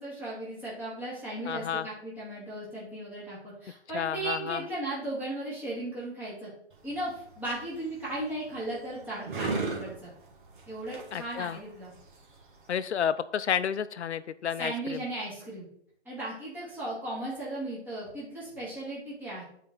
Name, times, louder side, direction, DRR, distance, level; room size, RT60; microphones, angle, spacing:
voice 1, 0.0-6.5 6.8-10.1 10.7-11.9 14.6-15.6 16.0-19.4, right 1 dB, 5° right, -9 dB, 2.5 m, -36 dB
voice 2, 1.5-1.9 3.9-4.6 11.1-11.6 12.7-15.0, left 8 dB, 75° left, 14 dB, 0.6 m, -31 dB
sound 1, 6.7-12.8, right 4 dB, 45° right, 1.7 m, -39 dB
9.7 x 4.6 x 3.8 m, 0.69 s
hypercardioid pair, 150°, 34 cm